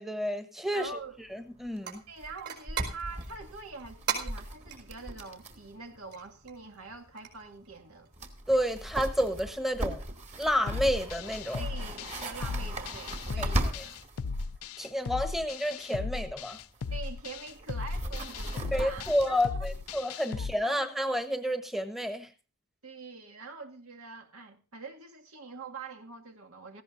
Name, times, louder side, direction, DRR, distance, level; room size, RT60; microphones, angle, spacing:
voice 1, 0.0-0.9 1.3-2.0 8.5-10.0 10.4-11.6 13.4-13.5 14.8-16.6 18.7-22.3, equal, ahead, 1.1 m, -30 dB
voice 2, 0.7-1.2 2.1-8.1 11.6-14.0 16.9-19.7 20.3-20.9 22.8-26.8, right 4 dB, 75° right, 2.1 m, -44 dB
sound 1, 0.9-1.0 1.2-1.3 1.6-1.8 2.2-5.7 6.0-6.1 7.8-7.9 8.1-14.5 16.3-20.0, right 1 dB, 30° right, 2.1 m, -38 dB
sound 2, 1.8-8.9, right 8 dB, 50° right, 4.7 m, -41 dB
sound 3, 10.7-20.5, left 4 dB, 80° left, 0.5 m, -37 dB
17.5 x 15.5 x 2.6 m
head